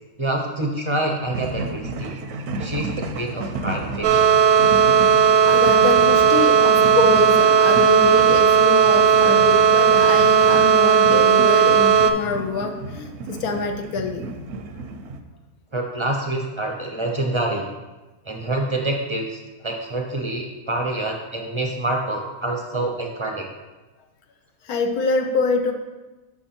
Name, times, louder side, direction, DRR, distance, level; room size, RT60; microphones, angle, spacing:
voice 1, 0.2-2.1 2.6-4.3 15.7-17.6 18.3-23.4, right 2 dB, 35° right, 1 dB, 0.4 m, -26 dB
sound 1, 1.3-15.2, right 2 dB, 65° right, 0.8 m, -32 dB
sound 2, 4.0-12.1, right 7 dB, 85° right, 1.1 m, -15 dB
voice 2, 5.4-14.3 24.6-25.7, left 3 dB, 90° left, 4 dB, 1.3 m, -25 dB
6.1 x 5.9 x 4.3 m, 1.1 s
omnidirectional pair, 1.5 m